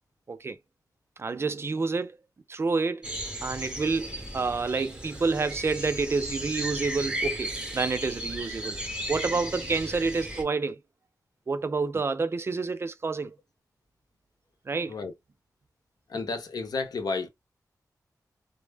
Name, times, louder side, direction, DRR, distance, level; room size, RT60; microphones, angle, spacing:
voice 1, 0.3-0.6 1.2-2.2 2.5-3.1 3.4-8.8 9.1-10.8 11.5-13.4 14.7-15.0, right 4 dB, 40° right, 0.4 m, -28 dB
sound 1, 3.0-10.4, right 1 dB, 15° right, 0.7 m, -35 dB
voice 2, 16.1-17.3, left 4 dB, 80° left, 0.6 m, -31 dB
2.0 x 2.0 x 3.2 m
wide cardioid pair, 90°, 7 cm